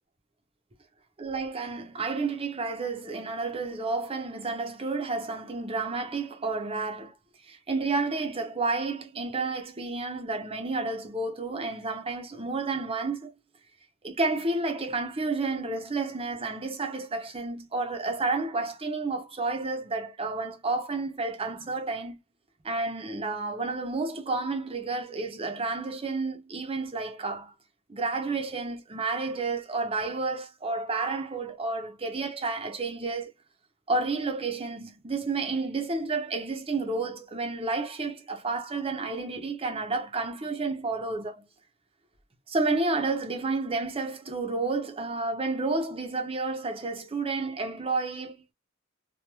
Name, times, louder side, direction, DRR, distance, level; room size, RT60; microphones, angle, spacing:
voice 1, 1.2-7.2 7.4-13.3 14.0-22.2 22.6-27.5 27.9-33.3 33.9-41.5 42.5-48.5, right 3 dB, 30° right, 0.8 m, -31 dB
3.1 x 2.5 x 2.3 m
head